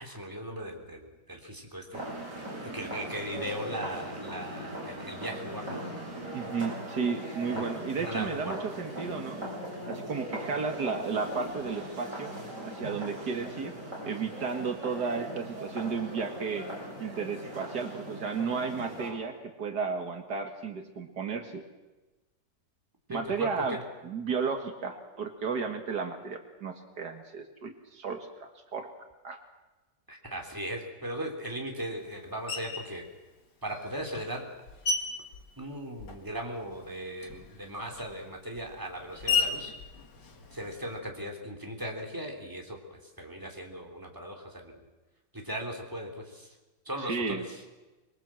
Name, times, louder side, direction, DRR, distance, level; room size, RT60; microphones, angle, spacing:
voice 1, 0.0-2.0 2.6-5.8 7.5-7.7 8.0-8.6 23.1-23.8 30.1-33.0 33.6-34.5 35.6-39.7 40.5-44.8 45.3-46.5 46.8-47.6, equal, 10° right, 1 dB, 3.4 m, -38 dB
sound 1, 1.9-19.1, right 1 dB, 45° right, 7.7 m, -39 dB
voice 2, 6.3-9.4 9.9-12.3 12.6-13.8 14.1-16.7 17.0-21.6 23.1-23.8 24.0-28.9 29.2-29.4 47.0-47.4, right 5 dB, 70° right, 5 dB, 2.2 m, -33 dB
Screech, 32.5-33.0 33.7-36.4 36.7-41.0, left 5 dB, 85° left, 2.7 m, -35 dB
25.0 x 22.5 x 7.6 m, 1.1 s
omnidirectional pair, 1.8 m